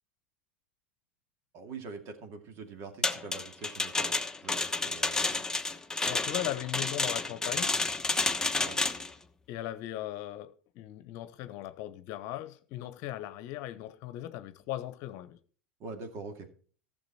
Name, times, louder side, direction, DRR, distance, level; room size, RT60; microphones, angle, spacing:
voice 1, 1.5-5.4 8.6-8.8 15.8-16.5, right 4 dB, 45° right, 2.5 m, -44 dB
sound 1, 3.0-9.1, left 3 dB, 10° left, 1.1 m, -30 dB
voice 2, 6.0-7.7 9.5-15.4, left 13 dB, 55° left, 1.0 m, -38 dB
15.0 x 7.0 x 4.3 m
hypercardioid pair, 85°, 6 cm